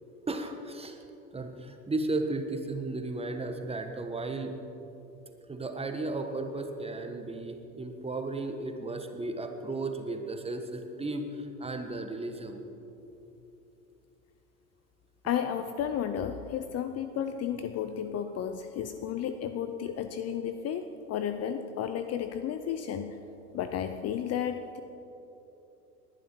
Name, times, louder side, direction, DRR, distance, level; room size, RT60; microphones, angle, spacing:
voice 1, 0.3-1.0 1.3-4.5 5.5-12.6, right 2 dB, 15° right, 6 dB, 1.4 m, -34 dB
voice 2, 15.2-23.2 23.5-24.8, left 9 dB, 35° left, 9 dB, 0.7 m, -33 dB
20.0 x 11.0 x 4.5 m, 3.0 s
hypercardioid pair, 85°, 46 cm